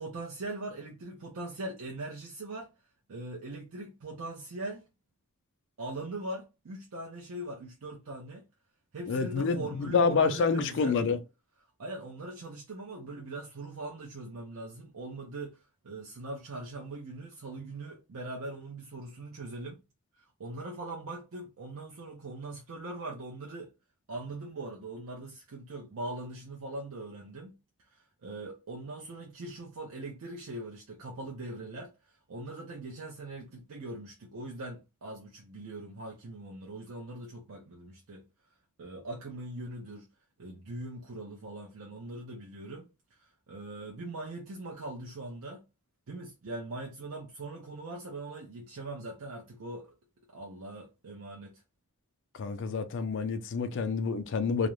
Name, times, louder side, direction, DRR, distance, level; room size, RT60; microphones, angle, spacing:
voice 1, 0.0-2.7 3.1-4.9 5.8-8.4 8.9-10.9 11.8-19.8 20.1-23.7 24.1-27.5 27.9-38.2 38.8-40.1 40.4-45.6 46.1-49.9 50.3-51.6, right 2 dB, 70° right, 0.5 m, -41 dB
voice 2, 9.1-11.2 52.4-54.7, left 5 dB, 55° left, 0.4 m, -28 dB
2.4 x 2.0 x 3.0 m
head